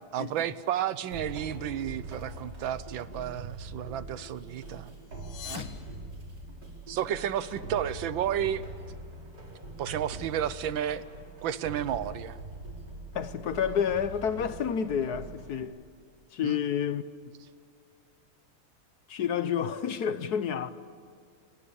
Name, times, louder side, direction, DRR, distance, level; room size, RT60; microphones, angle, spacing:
voice 1, 0.1-4.9 5.5-5.7 6.9-8.6 9.8-11.1 11.4-12.4 16.4-16.6, right 10 dB, 80° right, 1.6 m, -32 dB
sound 1, 1.1-15.6, right 2 dB, 60° right, 5.3 m, -43 dB
sound 2, 5.1-6.9, left 7 dB, 80° left, 2.4 m, -44 dB
voice 2, 13.1-15.8 16.3-17.0 19.1-20.7, left 8 dB, 60° left, 1.3 m, -29 dB
28.0 x 24.0 x 7.1 m
omnidirectional pair, 2.1 m